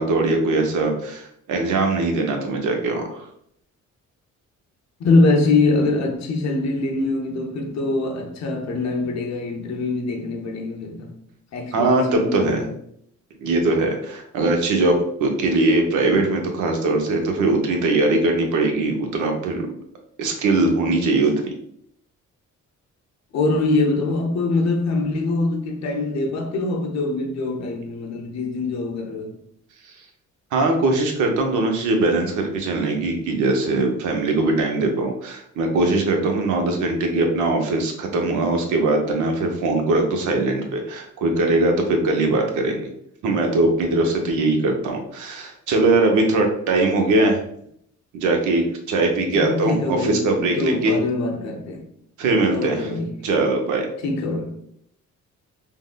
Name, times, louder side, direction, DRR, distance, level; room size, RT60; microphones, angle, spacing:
voice 1, 0.0-3.3 11.7-12.6 13.4-19.7 20.2-21.5 30.5-42.9 43.2-47.4 48.1-51.0 52.2-52.9 53.2-53.9, right 2 dB, 80° right, 0.7 m, -21 dB
voice 2, 5.0-11.1 11.5-12.7 23.3-29.4 49.4-51.8 52.5-53.3 54.0-54.6, left 3 dB, 60° left, 0.7 m, -23 dB
3.5 x 2.0 x 2.2 m
cardioid pair, 90°, 30 cm